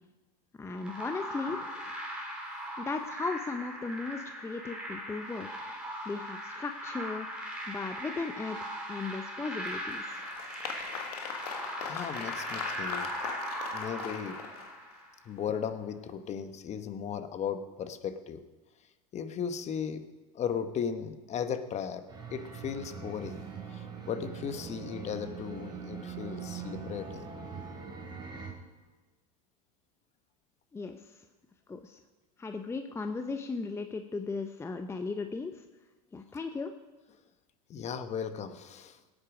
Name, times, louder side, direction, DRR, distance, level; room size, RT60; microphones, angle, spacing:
voice 1, 0.6-1.6 2.8-5.6 6.1-7.3 7.7-10.2 30.7-31.2 31.7-32.0 32.4-35.6 36.1-36.7, left 4 dB, 15° left, 7 dB, 0.6 m, -36 dB
sound 1, 0.8-15.2, equal, 5° right, 3.4 m, -39 dB
Applause, 9.6-15.0, left 7 dB, 85° left, 1.6 m, -40 dB
voice 2, 11.8-13.3 13.7-14.4 15.3-18.4 19.1-20.1 20.3-22.1 22.3-27.3 37.7-39.0, left 7 dB, 35° left, 10 dB, 1.1 m, -36 dB
sound 2, 22.1-28.5, right 6 dB, 20° right, 3.4 m, -42 dB
18.5 x 8.8 x 5.1 m, 1.2 s
supercardioid pair, 105°, 20 cm